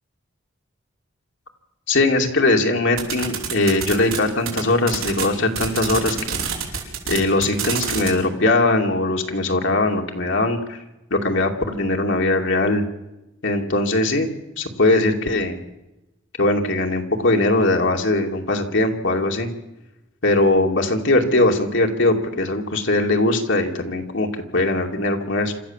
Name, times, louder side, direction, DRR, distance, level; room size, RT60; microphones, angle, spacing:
voice 1, 1.9-6.5 7.1-10.8 11.1-12.8 13.4-14.3 14.6-15.6 16.4-19.5 20.2-25.5, left 2 dB, 60° left, 2 dB, 2.6 m, -20 dB
sound 1, 3.0-4.2 4.5-4.6 4.9-5.3 5.6-8.1, right 7 dB, 85° right, 5.0 m, -25 dB
27.0 x 13.5 x 7.4 m, 0.94 s
head